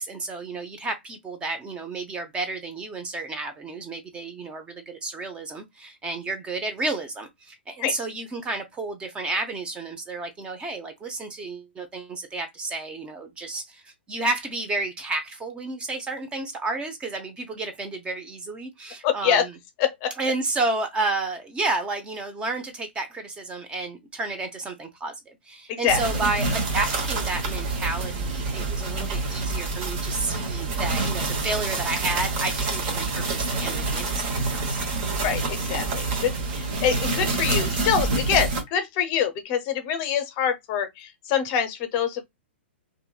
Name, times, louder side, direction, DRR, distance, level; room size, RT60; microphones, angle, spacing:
voice 1, 0.0-19.6 20.2-34.8, right 3 dB, 15° right, 0.7 m, -31 dB
voice 2, 19.0-19.4 19.8-20.1 25.7-26.0 35.2-42.2, left 8 dB, 40° left, 0.6 m, -25 dB
sound 1, 25.9-38.6, right 3 dB, 45° right, 1.0 m, -27 dB
2.8 x 2.6 x 2.2 m
figure-of-eight pair, 115°, 6 cm